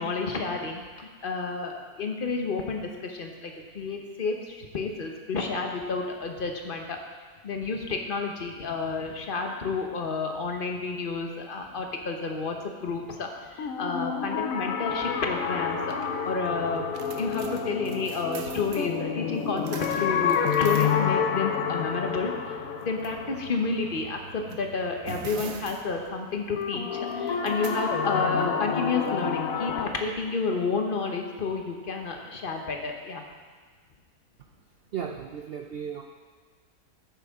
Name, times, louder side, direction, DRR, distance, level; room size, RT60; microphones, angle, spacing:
voice 1, 0.0-7.0 7.4-15.8 16.2-16.9 17.1-22.3 22.8-33.2, left 4 dB, 40° left, 3 dB, 1.1 m, -30 dB
sound 1, 13.6-24.5 26.6-29.9, left 7 dB, 70° left, 1.1 m, -29 dB
sound 2, 15.0-29.7, right 7 dB, 90° right, 1.3 m, -45 dB
voice 2, 34.9-36.0, right 7 dB, 65° right, 3 dB, 0.6 m, -35 dB
13.0 x 8.3 x 3.6 m, 1.5 s
omnidirectional pair, 1.6 m